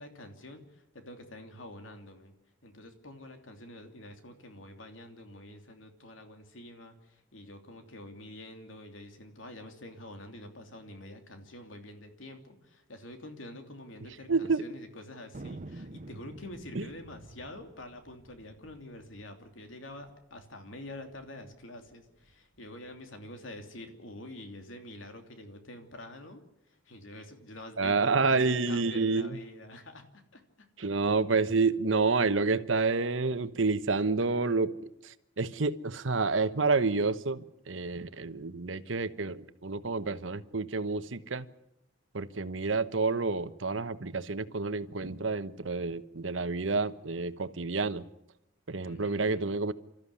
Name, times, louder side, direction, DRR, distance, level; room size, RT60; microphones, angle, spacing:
voice 1, 0.0-2.3 2.6-26.4 26.7-30.7 48.8-49.5, left 1 dB, 85° left, 5 dB, 3.0 m, -47 dB
voice 2, 14.3-14.6 16.7-16.8 27.8-29.4 30.8-41.5 42.1-48.0 48.7-49.7, right 4 dB, 80° right, 12 dB, 1.1 m, -29 dB
Thunder, 15.3-20.2 20.4-20.5 20.7-21.3 21.8-23.0, right 2 dB, 40° right, 0.8 m, -48 dB
27.5 x 13.5 x 9.8 m, 0.86 s
head